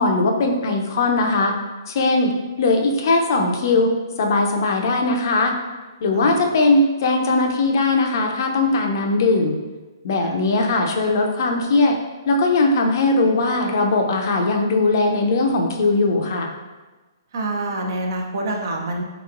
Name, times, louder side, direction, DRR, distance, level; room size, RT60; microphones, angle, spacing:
voice 1, 0.0-1.5 1.9-2.3 2.6-3.9 4.2-5.5 6.0-9.5 10.0-12.0 12.3-16.5, left 2 dB, 55° left, 3 dB, 0.5 m, -19 dB
voice 2, 17.3-19.0, right 2 dB, 60° right, 2 dB, 0.6 m, -26 dB
3.4 x 2.9 x 2.4 m, 1.2 s
hypercardioid pair, 135°, 2 cm